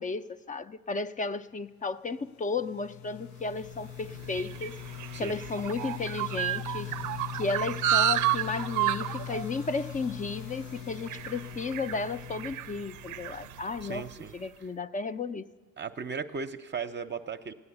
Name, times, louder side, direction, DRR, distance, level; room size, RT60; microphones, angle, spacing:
voice 1, 0.0-4.7 5.2-6.9 7.3-14.1 14.3-15.5, left 4 dB, 25° left, 13 dB, 0.5 m, -34 dB
sound 1, 2.2-14.0, left 13 dB, 85° left, 0.5 m, -42 dB
sound 2, 3.6-14.2, right 12 dB, 80° right, 0.5 m, -32 dB
voice 2, 13.8-14.3 15.8-17.5, right 5 dB, 35° right, 7 dB, 0.6 m, -36 dB
15.0 x 9.7 x 9.8 m, 1.5 s
cardioid pair, 90°, 30 cm